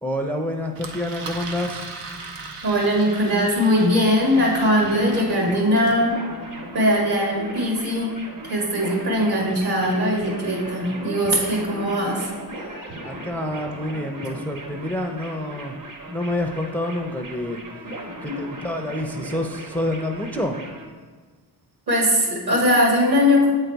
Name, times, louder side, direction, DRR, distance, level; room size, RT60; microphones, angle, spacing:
voice 1, 0.0-1.8 13.0-15.8 16.1-17.6 18.2-20.6, left 1 dB, 5° left, 3 dB, 0.4 m, -28 dB
Engine, 0.7-6.0, right 3 dB, 85° right, 0.9 m, -38 dB
voice 2, 2.6-6.2 6.7-8.2 8.4-12.3 14.2-14.3 18.3-18.4 21.9-23.5, equal, 65° right, -2 dB, 2.2 m, -20 dB
sound 1, 4.3-20.9, right 1 dB, 50° right, 1.2 m, -37 dB
7.9 x 4.0 x 4.5 m, 1.5 s
cardioid pair, 90°, 42 cm